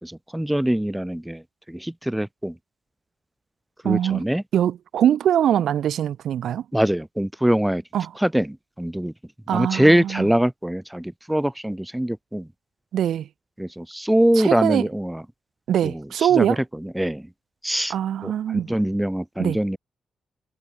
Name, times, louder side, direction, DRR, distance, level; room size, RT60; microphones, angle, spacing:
voice 1, 0.0-2.6 3.8-4.4 6.7-7.8 8.2-9.1 9.5-12.5 13.6-15.2 15.8-17.3 17.6-17.9 18.2-19.8, right 1 dB, 5° right, 4.5 m, -23 dB
voice 2, 3.8-4.2 4.5-6.6 7.9-8.1 9.5-10.2 12.9-13.3 14.4-14.8 15.7-16.6 17.9-18.7 19.4-19.6, right 10 dB, 65° right, 2.4 m, -22 dB
wide cardioid pair, 175°, 0 cm